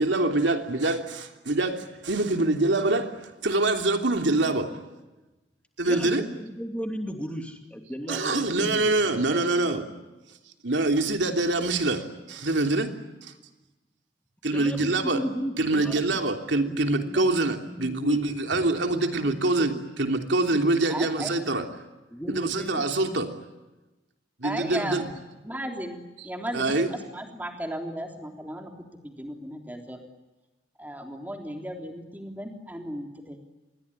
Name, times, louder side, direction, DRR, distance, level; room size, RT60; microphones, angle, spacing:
voice 1, 0.0-3.1 3.4-4.7 5.8-6.2 8.1-9.9 10.6-12.9 13.2-13.3 14.4-15.2 15.6-19.7 20.0-21.7 22.3-23.3 24.4-25.1 26.5-26.9, right 2 dB, 85° right, 3.2 m, -25 dB
voice 2, 5.8-9.2 14.5-16.2 16.6-19.8 20.5-21.1 22.1-22.9 24.9-25.2, equal, 5° left, 2.8 m, -36 dB
voice 3, 20.9-21.3 24.4-25.1 25.4-26.0 26.2-28.7 29.0-30.0 30.8-33.4, equal, 10° right, 3.4 m, -35 dB
27.0 x 22.0 x 9.9 m
head